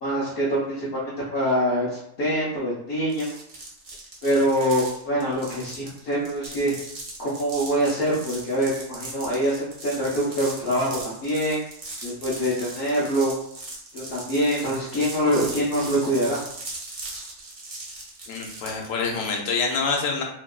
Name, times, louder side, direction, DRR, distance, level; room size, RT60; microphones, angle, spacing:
voice 1, 0.0-3.4 4.2-6.7 7.2-11.6 12.0-13.3 13.9-16.4, equal, 55° left, -7 dB, 0.8 m, -24 dB
sound 1, 3.1-18.9, right 2 dB, 45° right, 0.4 m, -39 dB
voice 2, 18.3-20.2, left 4 dB, 90° left, 0 dB, 1.0 m, -26 dB
2.8 x 2.3 x 2.2 m, 0.72 s
omnidirectional pair, 1.3 m